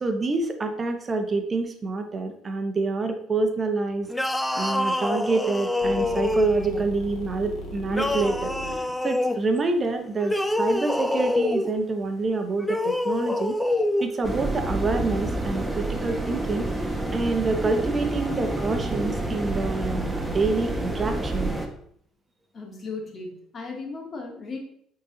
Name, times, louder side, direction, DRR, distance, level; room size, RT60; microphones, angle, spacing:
voice 1, 0.0-13.6 14.0-21.6, right 3 dB, 35° right, 6 dB, 0.9 m, -27 dB
sound 1, 4.1-6.8 7.9-9.4 10.2-11.7 12.6-14.1, left 2 dB, 10° left, 0.6 m, -26 dB
sound 2, 5.8-10.9, left 1 dB, 65° left, 1.7 m, -38 dB
sound 3, 14.2-21.7, right 2 dB, 10° right, 1.3 m, -28 dB
voice 2, 22.5-24.6, left 3 dB, 40° left, 1 dB, 2.1 m, -36 dB
8.6 x 4.0 x 3.9 m, 0.67 s
supercardioid pair, 70°, 0 cm